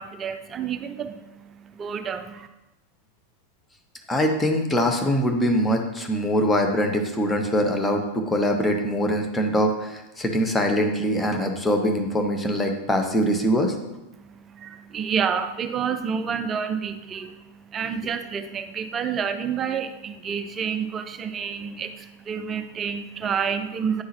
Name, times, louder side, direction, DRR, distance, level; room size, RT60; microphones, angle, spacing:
voice 1, 0.0-2.5 14.1-24.0, right 7 dB, 25° right, 9 dB, 0.4 m, -29 dB
voice 2, 4.1-13.7, equal, 10° left, 3 dB, 0.8 m, -23 dB
9.3 x 3.7 x 2.9 m, 1.0 s
figure-of-eight pair, 90°, 0 cm